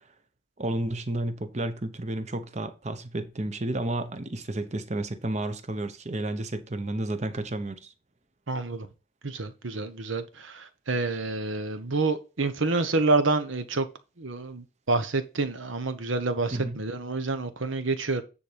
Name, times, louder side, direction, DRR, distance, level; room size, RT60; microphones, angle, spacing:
voice 1, 0.6-7.9 16.5-16.8, right 1 dB, 35° right, 0.9 m, -31 dB
voice 2, 8.5-8.9 9.2-13.9 14.2-18.2, right 3 dB, 75° right, 1.1 m, -28 dB
10.0 x 4.2 x 5.1 m
head